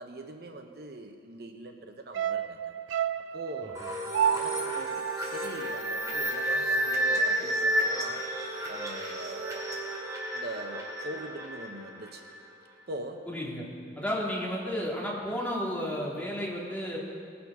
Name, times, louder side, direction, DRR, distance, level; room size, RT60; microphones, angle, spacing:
voice 1, 0.0-2.7 3.3-3.8 4.2-8.3 8.7-9.8 10.3-12.3 12.9-13.3, right 2 dB, 60° right, 5 dB, 0.8 m, -42 dB
sound 1, 2.1-6.5 6.8-6.9, right 9 dB, 90° right, 0.3 m, -32 dB
sound 2, 3.7-12.4, right 1 dB, 20° right, 2.2 m, -31 dB
voice 2, 13.3-13.7 14.0-17.0, equal, 10° left, -5 dB, 2.2 m, -32 dB
19.5 x 7.0 x 5.4 m, 2.3 s
head